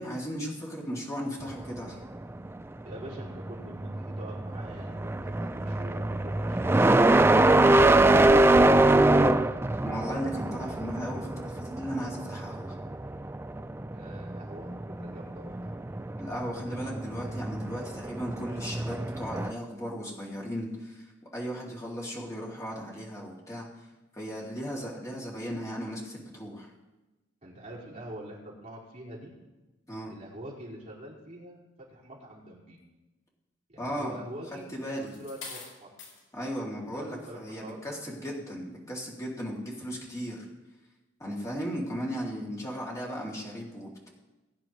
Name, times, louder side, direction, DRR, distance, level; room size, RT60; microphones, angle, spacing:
voice 1, 0.0-2.0 9.8-12.7 16.2-21.1 21.3-23.7 24.1-26.7 29.9-30.1 33.8-34.2 34.7-35.1 36.3-40.4 41.2-44.1, equal, 15° left, -4 dB, 2.5 m, -36 dB
sound 1, 1.5-19.5, right 2 dB, 10° right, 0.4 m, -24 dB
voice 2, 2.8-8.7 13.9-15.7 27.4-29.3 30.1-32.8 33.7-34.7 34.9-35.9 36.9-38.0, right 1 dB, 35° right, -6 dB, 4.7 m, -45 dB
sound 2, 34.5-36.2 37.0-37.2, left 4 dB, 85° left, 5.3 m, -44 dB
21.0 x 10.0 x 3.1 m, 1.1 s
head